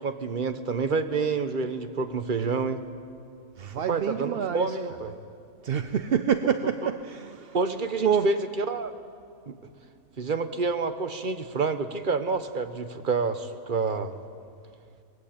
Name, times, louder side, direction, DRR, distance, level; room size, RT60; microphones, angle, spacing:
voice 1, 0.0-2.8 3.9-5.1 7.5-8.9 9.5-9.6 10.2-14.1, right 4 dB, 35° right, 10 dB, 1.2 m, -28 dB
voice 2, 3.6-4.8 5.6-7.6 8.0-8.3, right 8 dB, 50° right, 10 dB, 0.7 m, -27 dB
23.0 x 20.0 x 8.9 m, 2.3 s
omnidirectional pair, 1.6 m